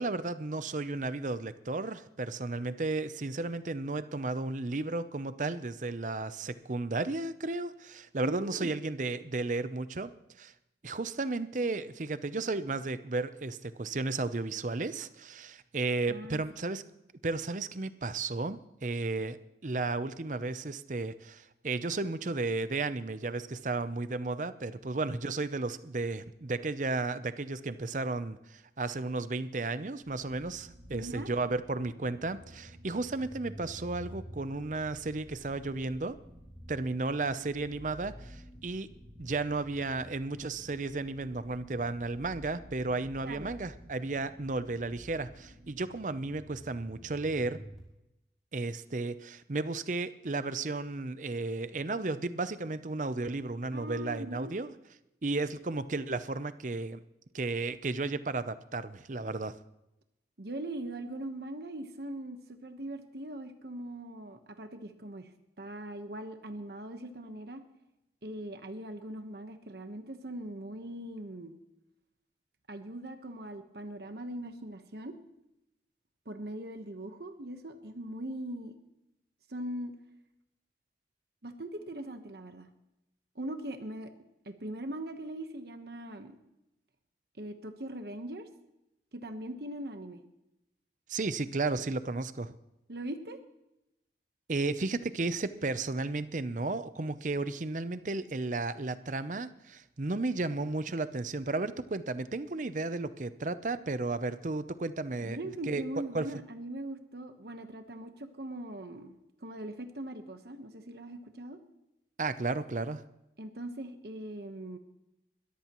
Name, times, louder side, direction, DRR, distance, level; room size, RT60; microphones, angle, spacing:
voice 1, 0.0-10.1 10.4-10.5 10.8-16.8 17.2-19.4 19.6-36.2 36.7-38.9 39.2-47.6 48.5-54.7 55.2-57.0 57.3-59.5 91.1-92.5 94.5-105.4 105.7-105.8 106.1-106.3 112.2-113.0, right 3 dB, 45° right, 13 dB, 0.6 m, -33 dB
voice 2, 8.2-8.8 16.1-16.4 30.9-31.3 43.2-43.5 53.7-54.5 60.4-65.3 65.6-67.6 68.2-71.5 72.7-75.2 76.2-78.8 79.5-79.9 81.4-82.7 83.3-84.1 84.4-86.4 87.4-88.5 89.1-90.2 92.9-93.4 105.2-109.1 109.4-111.6 113.4-114.8, right 1 dB, 65° right, 7 dB, 1.1 m, -40 dB
sound 1, 30.0-47.8, equal, 5° right, 4.7 m, -51 dB
21.0 x 14.0 x 3.1 m, 0.89 s
head